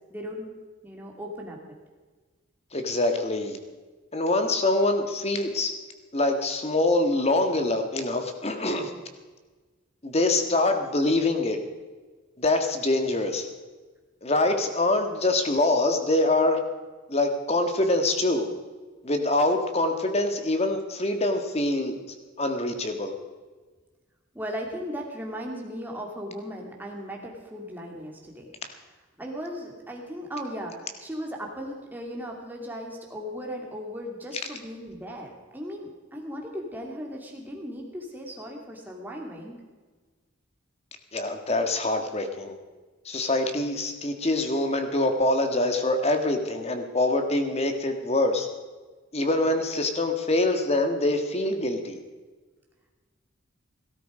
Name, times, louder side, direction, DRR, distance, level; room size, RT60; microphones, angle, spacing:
voice 1, 0.1-0.5 0.8-1.6 24.3-28.5 29.2-39.6, equal, 10° right, 0 dB, 2.6 m, -37 dB
voice 2, 2.7-3.6 4.1-5.7 6.1-8.9 10.0-11.6 12.4-13.5 14.2-16.6 17.1-18.5 19.0-22.0 22.4-23.1 41.1-42.5 43.0-48.5 49.1-52.0, left 2 dB, 30° left, 6 dB, 1.7 m, -24 dB
17.5 x 13.0 x 5.1 m, 1.4 s
head